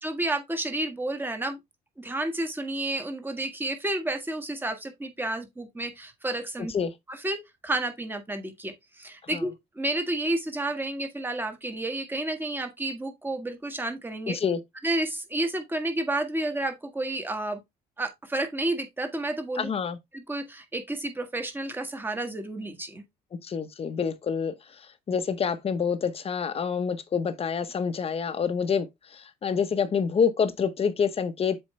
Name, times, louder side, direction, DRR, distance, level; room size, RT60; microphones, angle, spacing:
voice 1, 0.0-1.6 2.0-6.7 7.1-14.4 14.8-17.6 18.0-19.7 20.1-23.0, right 1 dB, 10° right, 1.6 m, -31 dB
voice 2, 14.3-14.6 19.5-20.0 23.4-31.6, left 6 dB, 35° left, 0.9 m, -27 dB
7.6 x 4.5 x 3.2 m
cardioid pair, 110°, 17 cm